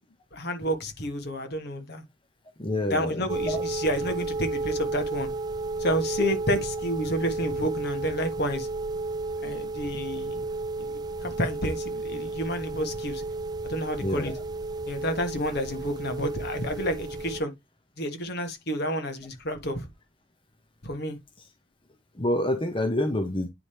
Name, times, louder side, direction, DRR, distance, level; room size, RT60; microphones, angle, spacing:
voice 1, 0.3-2.0 2.9-5.3 5.8-8.7 9.4-10.3 10.8-10.9 11.2-13.2 13.6-14.3 14.9-17.5 18.0-19.9 20.8-21.2, equal, 55° left, 1.5 m, -30 dB
voice 2, 2.6-3.6 14.0-14.3 22.2-23.5, left 1 dB, 25° left, 0.8 m, -27 dB
sound 1, 3.3-17.4, right 3 dB, 20° right, 0.4 m, -33 dB
9.6 x 3.4 x 4.4 m
head